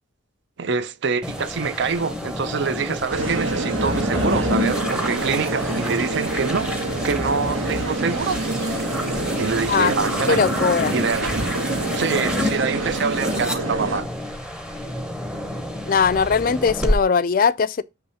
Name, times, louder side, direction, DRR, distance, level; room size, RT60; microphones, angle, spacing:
voice 1, 0.6-6.7 7.0-8.4 9.4-10.4 10.9-11.6 11.9-14.1, right 5 dB, 60° right, 0.5 m, -25 dB
sound 1, 1.2-17.0, left 1 dB, 5° right, 0.7 m, -28 dB
sound 2, 3.1-14.0, right 2 dB, 80° right, 1.2 m, -27 dB
voice 2, 10.3-10.9 15.9-17.8, left 6 dB, 45° left, 0.3 m, -19 dB
6.9 x 3.1 x 5.4 m
head